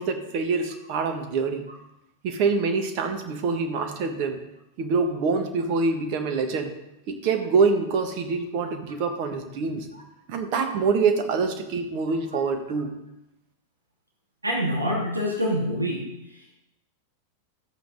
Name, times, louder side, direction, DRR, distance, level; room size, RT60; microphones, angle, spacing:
voice 1, 0.0-1.6 2.2-4.4 4.8-6.7 7.1-9.9 10.3-12.9, right 4 dB, 45° right, 5 dB, 1.6 m, -25 dB
voice 2, 14.4-16.1, equal, 85° right, -3 dB, 2.6 m, -25 dB
13.0 x 8.5 x 4.1 m, 0.89 s
figure-of-eight pair, 90°, 0 cm